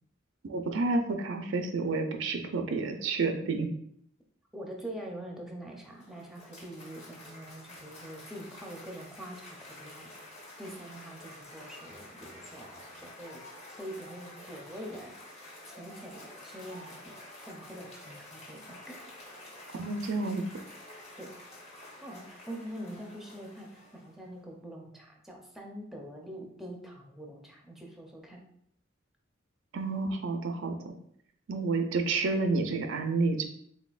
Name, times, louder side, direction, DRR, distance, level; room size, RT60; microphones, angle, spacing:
voice 1, 0.4-3.7 19.8-20.4 29.7-30.9 31.5-33.5, right 3 dB, 70° right, 5 dB, 0.5 m, -30 dB
voice 2, 4.5-10.1 10.6-13.4 13.7-15.1 15.7-17.1 17.5-19.0 21.2-21.3 22.0-23.7 24.0-28.4, right 1 dB, ahead, 0 dB, 0.6 m, -44 dB
Cheering / Applause, 5.7-24.3, left 1 dB, 35° left, 1.1 m, -49 dB
4.2 x 3.7 x 2.4 m, 0.67 s
head